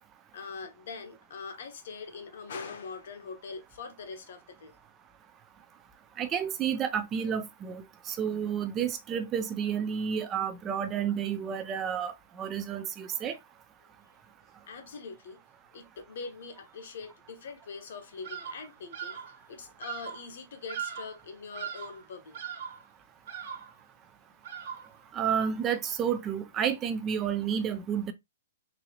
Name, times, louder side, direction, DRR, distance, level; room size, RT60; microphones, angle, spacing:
voice 1, 0.3-4.7 14.7-15.4 15.7-22.4, left 5 dB, 60° left, 0.9 m, -43 dB
voice 2, 6.2-13.4 25.1-28.1, right 8 dB, 15° right, 0.3 m, -31 dB
Bird vocalization bird call bird song, 18.2-18.7 18.9-19.4 19.8-20.2 20.7-21.2 21.5-22.0 22.3-22.9 23.3-23.8 24.4-25.0, right 8 dB, 55° right, 1.2 m, -39 dB
4.0 x 2.7 x 2.7 m
hypercardioid pair, 170°, 0 cm